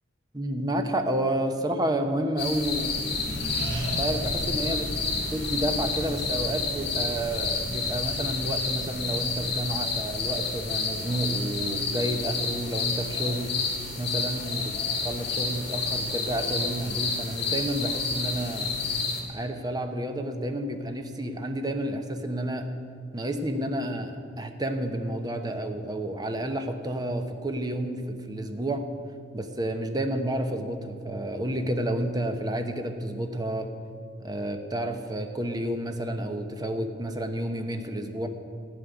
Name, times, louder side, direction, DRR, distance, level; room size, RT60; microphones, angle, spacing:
voice 1, 0.3-3.1 3.9-13.6 14.0-18.7 19.3-22.7 23.1-28.9 29.3-33.7 34.2-38.3, right 1 dB, 20° right, 6 dB, 0.9 m, -30 dB
sound 1, 2.4-19.2, left 4 dB, 60° left, 2.6 m, -30 dB
Accelerating revving vroom, 2.5-13.5, right 1 dB, 70° right, 3.3 m, -38 dB
14.5 x 5.6 x 9.8 m, 2.2 s
head